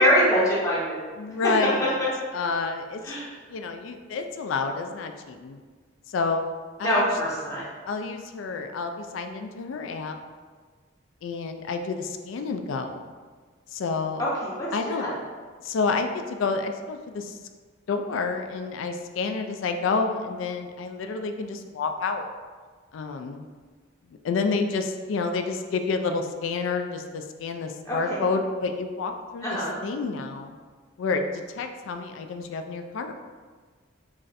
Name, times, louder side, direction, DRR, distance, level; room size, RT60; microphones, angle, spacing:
voice 1, 0.0-1.0 1.4-1.5 2.0-2.1 3.0-3.3 6.8-7.7 14.2-15.1 27.9-28.3 29.4-29.8, equal, 15° left, -7 dB, 0.6 m, -24 dB
voice 2, 1.2-2.0 2.3-3.1 3.5-5.6 6.1-6.5 6.8-7.0 7.9-10.2 11.2-13.1 13.7-14.2 14.7-15.1 15.6-17.4 17.9-22.2 22.9-23.4 24.1-30.5 31.0-33.1, left 4 dB, 75° left, 6 dB, 0.3 m, -29 dB
3.2 x 2.5 x 3.9 m, 1.5 s
head